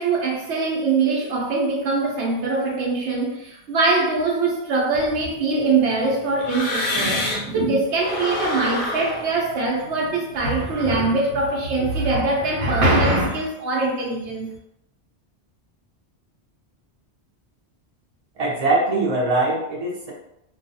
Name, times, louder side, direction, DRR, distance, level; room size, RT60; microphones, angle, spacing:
voice 1, 0.0-14.5, right 3 dB, 90° right, 1.0 m, -22 dB
sound 1, 4.9-7.6 7.9-11.0, left 2 dB, 55° left, 0.6 m, -29 dB
voice 2, 18.4-20.1, right 2 dB, 40° right, 0.6 m, -22 dB
2.3 x 2.3 x 2.6 m
omnidirectional pair, 1.1 m